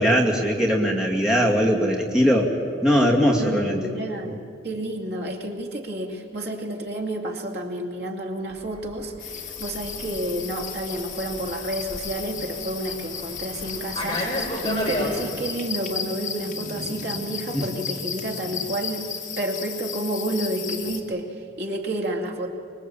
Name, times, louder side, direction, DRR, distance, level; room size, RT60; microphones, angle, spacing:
voice 1, 0.0-2.5 2.8-3.8 4.3-4.4 17.5-17.6, equal, 5° right, -2 dB, 2.4 m, -20 dB
voice 2, 3.3-4.4 4.6-22.5, right 1 dB, 60° right, 2 dB, 2.5 m, -30 dB
Fixed-wing aircraft airplane, 8.6-15.1, left 1 dB, 25° left, 5.0 m, -33 dB
sound 1, 9.2-21.0, left 7 dB, 40° left, 2.4 m, -34 dB
24.5 x 22.5 x 8.7 m, 2.5 s
head